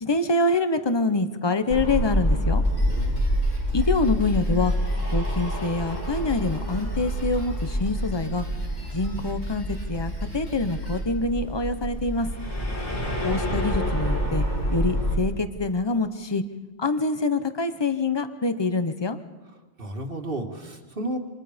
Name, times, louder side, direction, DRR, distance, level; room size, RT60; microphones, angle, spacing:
voice 1, 0.0-2.6 3.7-4.7 5.1-8.4 8.9-12.3 13.2-16.4 16.8-19.2, left 3 dB, 25° left, 10 dB, 1.0 m, -25 dB
sound 1, 1.7-15.2, equal, 45° left, 4.2 m, -27 dB
Drum kit, 2.6-11.0, equal, 75° left, 6.5 m, -41 dB
voice 2, 2.8-3.2 12.6-13.0 19.8-21.2, right 1 dB, 55° right, 4 dB, 2.3 m, -33 dB
28.0 x 25.5 x 5.2 m, 1.2 s
omnidirectional pair, 1.2 m